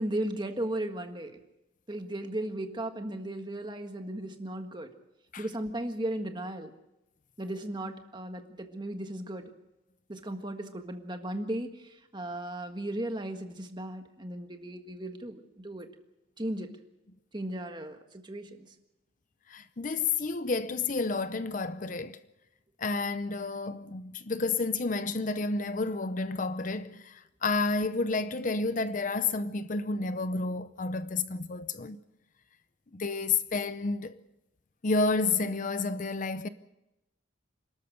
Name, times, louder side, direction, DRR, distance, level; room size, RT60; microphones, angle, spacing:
voice 1, 0.0-1.4 1.9-4.9 5.4-6.7 7.4-9.5 10.1-15.9 16.4-16.7 17.3-18.7, right 1 dB, 25° right, 1.6 m, -36 dB
voice 2, 19.5-22.2 22.8-32.0 32.9-34.2 34.8-36.5, left 3 dB, 45° left, 0.7 m, -30 dB
27.5 x 13.0 x 8.0 m
head